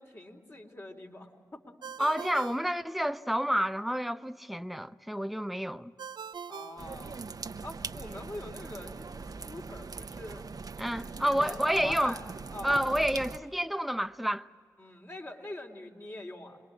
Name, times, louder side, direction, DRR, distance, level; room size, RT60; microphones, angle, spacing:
voice 1, 0.0-1.7 6.5-7.2 7.6-10.5 11.0-12.9 14.8-16.6, left 1 dB, 35° left, 3.9 m, -44 dB
Ringtone, 1.8-3.5 6.0-7.7, right 7 dB, 70° right, 0.6 m, -44 dB
voice 2, 2.0-5.9 10.8-12.2 12.6-14.5, equal, ahead, 0.8 m, -29 dB
sound 1, 6.8-13.4, right 4 dB, 55° right, 1.0 m, -41 dB
27.0 x 21.5 x 7.8 m
supercardioid pair, 40°, 8 cm